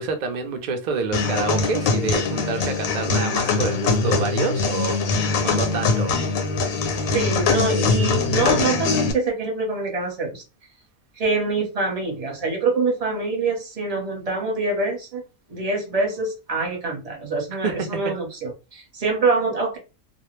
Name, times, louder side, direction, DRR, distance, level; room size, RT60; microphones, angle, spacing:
voice 1, 0.0-6.2 17.6-18.2, right 4 dB, 60° right, 0.4 m, -28 dB
sound 1, 1.1-9.1, left 4 dB, 85° left, 1.0 m, -22 dB
voice 2, 7.1-10.4 11.2-15.2 15.5-19.8, right 3 dB, 35° right, 0.8 m, -25 dB
2.3 x 2.0 x 3.0 m
omnidirectional pair, 1.4 m